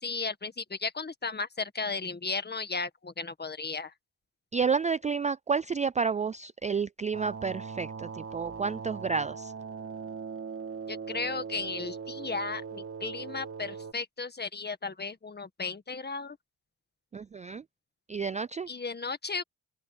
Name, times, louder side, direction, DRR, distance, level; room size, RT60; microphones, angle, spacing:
voice 1, 0.0-3.9 10.9-16.4 18.7-19.4, left 4 dB, 30° left, 1.8 m, -35 dB
voice 2, 4.5-9.5 17.1-17.6 18.1-18.7, right 5 dB, 25° right, 0.3 m, -30 dB
sound 1, 7.1-13.9, right 5 dB, 40° right, 2.0 m, -40 dB
open air
cardioid pair, 75°, 33 cm